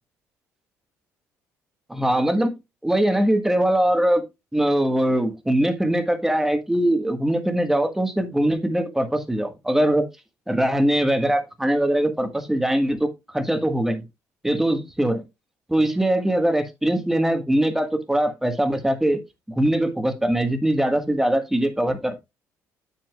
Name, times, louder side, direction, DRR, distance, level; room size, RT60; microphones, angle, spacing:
voice 1, 1.9-2.5 2.8-4.2 4.5-10.0 10.5-14.0 14.4-15.2 15.7-19.2 19.5-22.2, right 1 dB, 5° right, 1.6 m, -22 dB
8.6 x 7.9 x 2.3 m
cardioid pair, 110°, 6 cm